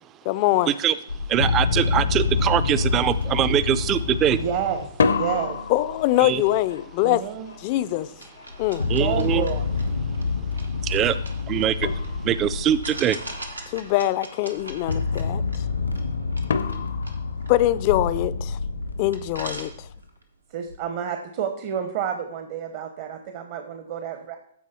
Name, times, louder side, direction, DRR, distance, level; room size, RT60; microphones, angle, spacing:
voice 1, 0.3-0.7 5.7-7.2 7.6-8.1 8.6-8.8 13.7-15.4 17.5-18.6 19.0-19.9, left 15 dB, 40° left, 0.4 m, -23 dB
Tension Riser - Steady Bass Rumble Suspense Builder, 1.1-4.9 8.5-13.9 14.6-19.9 20.7-20.8, left 4 dB, 90° left, 1.6 m, -27 dB
voice 2, 1.3-4.4 6.2-6.4 8.9-9.4 10.8-11.2 11.5-11.9 12.2-13.2, right 10 dB, 25° right, 0.5 m, -22 dB
sound 1, 2.2-2.4 2.8-3.3 4.8-9.6 11.3-11.4 11.8-12.7 16.5-18.2, left 4 dB, 70° left, 0.7 m, -30 dB
voice 3, 4.3-4.9 5.2-5.6 7.0-7.5 8.8-9.7 10.6-10.7 20.5-24.4, right 8 dB, 45° right, 0.9 m, -29 dB
sound 2, 8.2-12.2 12.8-18.5 18.8-18.9 19.1-20.2, right 2 dB, 90° right, 1.5 m, -42 dB
14.0 x 4.8 x 4.4 m
figure-of-eight pair, 120°, 0 cm